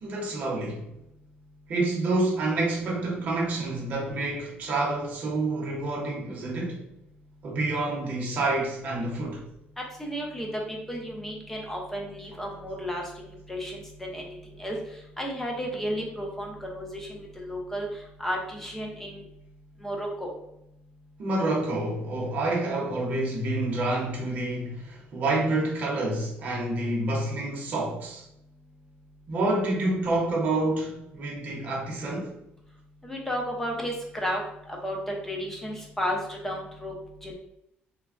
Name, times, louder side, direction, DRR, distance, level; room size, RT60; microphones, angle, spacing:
voice 1, 0.0-0.9 1.7-6.8 7.4-9.4 21.2-28.2 29.3-32.3, right 2 dB, 40° right, 0.8 m, -28 dB
voice 2, 10.0-14.8 15.2-17.9 18.2-19.2 19.8-20.3 33.0-34.4 34.7-36.9 37.2-37.3, equal, 10° left, 0.5 m, -33 dB
3.2 x 2.1 x 2.4 m
cardioid pair, 165°, 4 cm